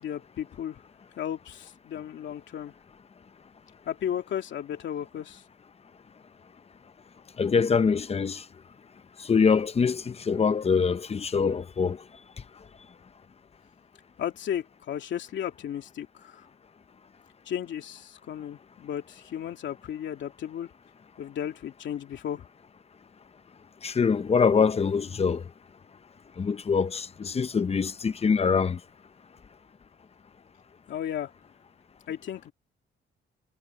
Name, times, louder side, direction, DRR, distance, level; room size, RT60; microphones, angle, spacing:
voice 1, 0.0-0.8 1.2-2.7 3.9-5.4 14.2-16.5 17.5-20.7 21.2-22.4 30.9-31.3 32.1-32.5, left 10 dB, 70° left, 2.7 m, -34 dB
voice 2, 7.4-8.4 9.2-12.0 23.8-25.4 26.4-28.8, left 5 dB, 30° left, 0.9 m, -24 dB
cardioid pair, 90°, 20 cm